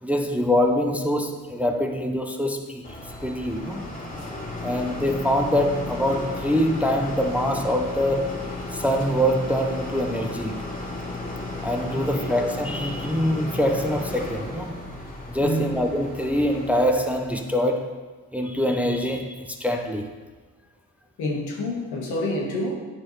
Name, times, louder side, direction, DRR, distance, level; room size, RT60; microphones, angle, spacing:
voice 1, 0.0-3.0 3.2-3.9 4.6-8.4 8.7-10.5 11.6-14.9 15.3-17.9 18.3-20.1, equal, 5° right, 3 dB, 0.5 m, -24 dB
sound 1, 2.8-17.5, left 2 dB, 20° left, 2.1 m, -34 dB
voice 2, 11.9-12.3 15.4-15.7 21.2-22.7, left 1 dB, 85° left, -2 dB, 1.5 m, -28 dB
9.3 x 4.4 x 3.2 m, 1.4 s
cardioid pair, 75°, 38 cm